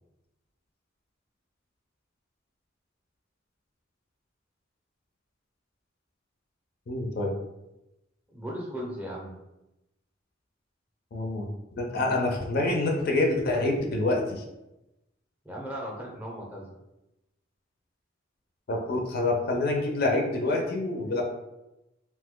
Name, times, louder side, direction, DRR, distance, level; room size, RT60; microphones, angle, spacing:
voice 1, 6.9-7.3 11.1-11.5 11.8-14.4 18.7-21.2, left 2 dB, 50° left, 2 dB, 0.4 m, -26 dB
voice 2, 8.3-9.3 15.4-16.7, equal, 10° right, -3 dB, 0.5 m, -37 dB
2.7 x 2.1 x 3.6 m, 0.94 s
head